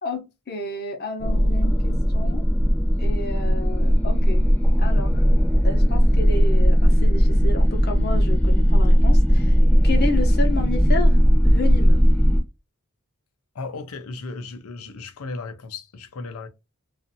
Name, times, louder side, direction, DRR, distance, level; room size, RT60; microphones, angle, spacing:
voice 1, 0.0-2.5 3.0-5.2 5.6-9.6 9.8-11.2 11.4-12.0, left 3 dB, 45° left, 0.8 m, -31 dB
sound 1, 1.2-12.4, equal, 5° left, 0.8 m, -17 dB
voice 2, 13.5-16.5, left 3 dB, 85° left, 0.6 m, -35 dB
2.6 x 2.4 x 2.6 m
head